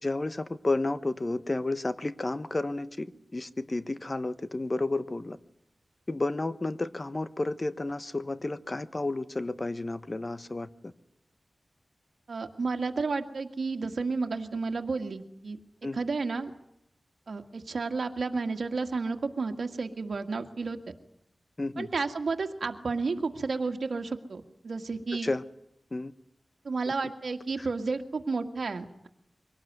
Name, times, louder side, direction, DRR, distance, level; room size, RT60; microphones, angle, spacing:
voice 1, 0.0-5.4 6.1-10.9 15.8-16.0 21.6-21.9 25.2-25.4 25.9-26.1 27.6-27.7, left 2 dB, 35° left, 13 dB, 1.1 m, -31 dB
voice 2, 12.3-15.6 15.9-16.5 17.3-20.9 21.8-25.3 26.6-29.1, right 4 dB, 80° right, 5 dB, 1.9 m, -32 dB
24.0 x 18.5 x 9.4 m, 0.79 s
wide cardioid pair, 85°, 0 cm